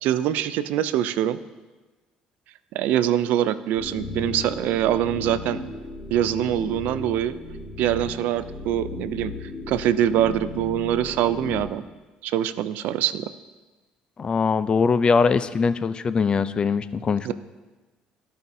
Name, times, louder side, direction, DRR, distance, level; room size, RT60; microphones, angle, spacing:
voice 1, 0.0-1.4 2.7-5.6 6.1-7.3 7.8-9.3 9.7-11.8 12.2-13.2 17.2-17.3, right 11 dB, 75° right, 14 dB, 0.4 m, -24 dB
sound 1, 3.8-11.6, left 3 dB, 15° left, 1.4 m, -36 dB
voice 2, 14.2-17.3, left 5 dB, 35° left, 14 dB, 0.4 m, -22 dB
14.5 x 5.5 x 2.7 m, 1.2 s
supercardioid pair, 90°, 3 cm